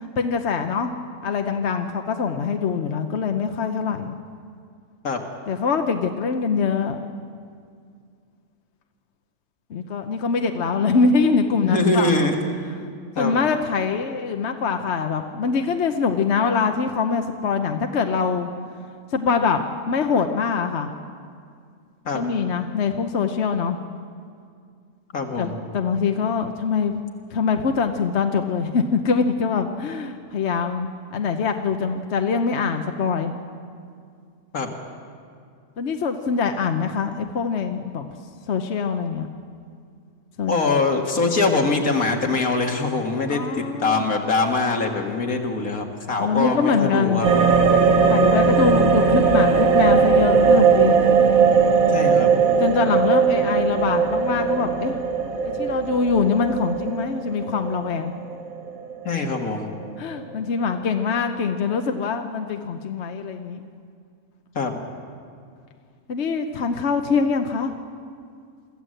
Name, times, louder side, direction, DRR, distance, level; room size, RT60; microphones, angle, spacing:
voice 1, 0.2-0.9 1.2-4.1 5.5-7.1 9.7-12.1 13.2-18.5 19.1-19.6 19.9-20.9 22.1-23.8 25.4-27.0 27.3-33.3 35.8-38.1 38.5-39.3 40.4-40.5 43.3-44.1 46.2-47.2 48.0-51.0 52.6-55.0 55.4-58.2 60.0-63.6 66.1-67.7, left 5 dB, 55° left, 6 dB, 1.0 m, -23 dB
voice 2, 11.6-12.4 12.8-13.4 22.1-22.2 25.1-25.6 34.5-34.7 40.5-47.3 51.9-52.4 59.0-59.7 64.6-64.7, left 3 dB, 70° left, 3 dB, 2.3 m, -23 dB
sound 1, 47.2-59.4 59.7-59.8, right 5 dB, 70° right, 1.8 m, -19 dB
24.0 x 14.5 x 7.8 m, 2.3 s
omnidirectional pair, 1.5 m